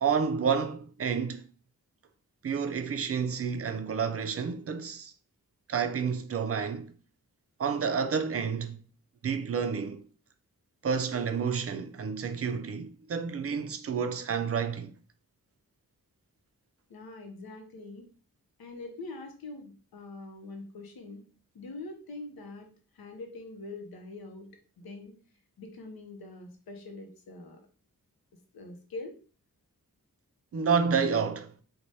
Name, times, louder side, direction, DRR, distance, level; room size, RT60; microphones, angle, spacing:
voice 1, 0.0-1.5 2.4-5.1 5.7-6.9 7.6-8.8 9.2-10.0 10.8-14.9 30.5-31.5, right 6 dB, 40° right, 0.4 m, -29 dB
voice 2, 16.9-18.1 18.6-21.2 21.5-22.7 22.9-24.5 24.8-25.1 25.6-27.6 28.5-29.2, left 2 dB, 75° left, 0.7 m, -43 dB
3.1 x 2.2 x 2.6 m
cardioid pair, 45°, 36 cm